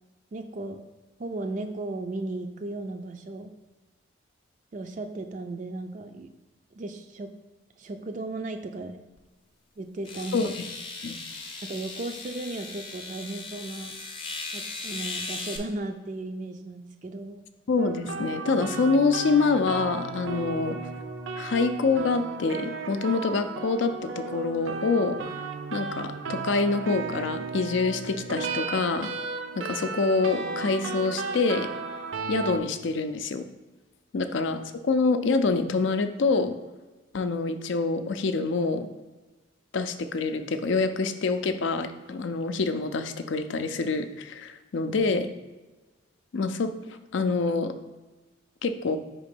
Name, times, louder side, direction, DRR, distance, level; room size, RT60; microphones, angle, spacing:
voice 1, 0.3-0.9 1.2-3.5 4.7-6.3 6.7-7.3 7.8-9.0 9.8-10.5 11.6-14.0 14.5-17.4, right 2 dB, 40° right, 6 dB, 0.3 m, -35 dB
sound 1, 9.2-9.3 10.0-15.6, left 3 dB, 25° left, 0.6 m, -38 dB
voice 2, 17.7-20.8 21.4-25.2 25.7-29.1 29.6-31.7 32.3-33.4 34.1-36.5 37.1-38.9 39.7-45.3 46.3-47.7 48.6-49.0, left 4 dB, 70° left, 9 dB, 0.5 m, -26 dB
sound 2, 17.8-32.6, right 4 dB, 85° right, 0.6 m, -34 dB
4.9 x 3.7 x 5.2 m, 1.2 s
head